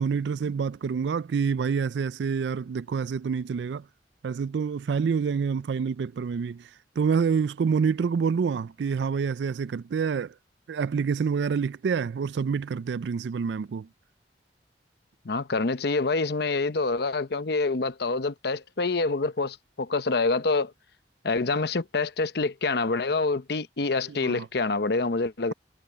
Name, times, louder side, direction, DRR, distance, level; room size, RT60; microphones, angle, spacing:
voice 1, 0.0-3.8 4.2-6.7 7.0-10.3 10.7-13.9 24.2-24.5, right 6 dB, 75° right, 0.4 m, -27 dB
voice 2, 15.2-20.7 21.2-25.5, left 3 dB, 65° left, 0.8 m, -26 dB
head